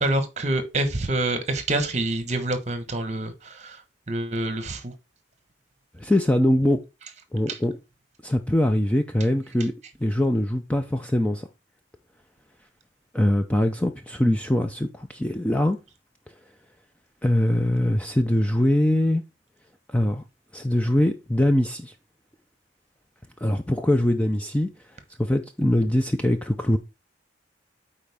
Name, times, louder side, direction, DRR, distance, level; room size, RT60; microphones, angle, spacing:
voice 1, 0.0-3.8 4.1-4.9, right 2 dB, 35° right, 1.1 m, -26 dB
voice 2, 6.0-6.8 7.3-7.7 8.2-9.7 10.0-11.5 13.1-15.8 17.2-19.2 19.9-20.2 20.5-21.9 23.4-24.7 25.2-26.8, left 1 dB, 5° left, 0.4 m, -22 dB
8.9 x 4.3 x 3.4 m
head